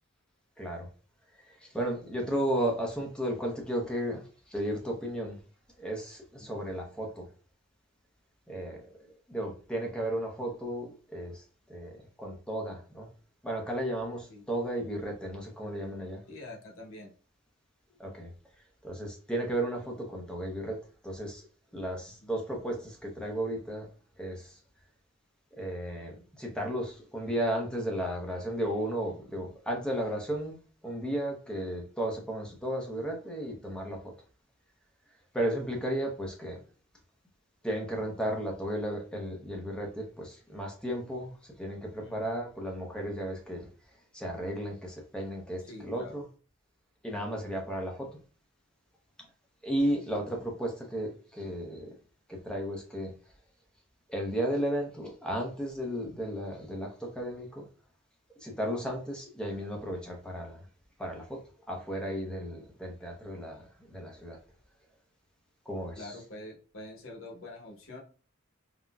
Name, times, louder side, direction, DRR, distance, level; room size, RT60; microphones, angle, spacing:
voice 1, 0.6-0.9 1.4-5.4 5.8-7.3 8.5-11.4 11.7-11.9 12.2-13.1 13.4-16.2 18.0-18.3 18.8-20.8 21.0-21.4 21.7-23.9 24.2-24.6 25.6-30.6 30.8-34.1 35.3-36.6 37.6-43.7 44.1-46.2 47.0-48.1 49.6-51.9 52.3-53.1 54.1-57.6 58.4-60.6 61.0-61.4 61.7-64.4 65.7-66.1, right 1 dB, 5° left, 0.6 m, -34 dB
voice 2, 16.3-17.1 22.2-22.3 42.0-42.4 45.6-46.2 66.0-68.0, left 2 dB, 70° left, 0.9 m, -46 dB
3.8 x 2.1 x 2.2 m
head